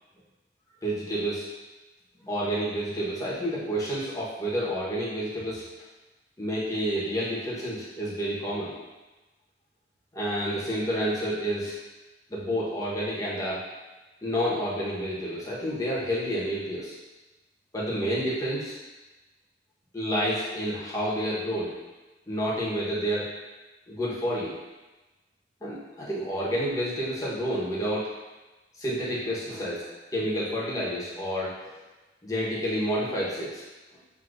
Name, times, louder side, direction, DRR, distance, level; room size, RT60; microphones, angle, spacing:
voice 1, 0.8-1.5 2.2-5.7 6.4-8.7 10.1-11.8 12.3-13.6 14.2-17.0 17.7-18.7 19.9-21.7 22.3-23.3 23.9-24.6 25.6-28.1 28.8-29.8 30.1-31.8 32.2-33.6, equal, 20° left, -8 dB, 1.1 m, -29 dB
6.1 x 2.9 x 2.6 m, 1.1 s
head